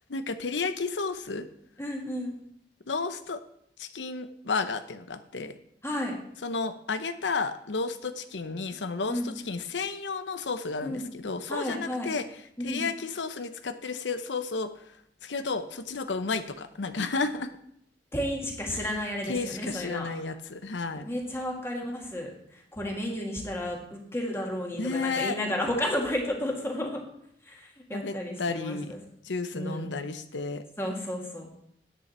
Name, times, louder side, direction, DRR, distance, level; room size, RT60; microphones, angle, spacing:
voice 1, 0.1-1.4 2.9-3.4 3.8-5.6 6.4-12.2 12.6-14.7 15.2-17.5 18.7-18.9 19.3-21.1 24.8-25.4 27.9-29.0 29.2-30.6, left 4 dB, 90° left, 11 dB, 0.8 m, -32 dB
voice 2, 1.8-2.4 5.8-6.1 9.1-9.3 10.8-11.1 11.5-12.1 12.6-12.9 18.1-20.1 21.0-27.0 27.5-29.0 29.5-29.9 30.8-31.5, left 1 dB, 15° left, 0 dB, 1.9 m, -32 dB
10.0 x 8.5 x 4.3 m, 0.71 s
head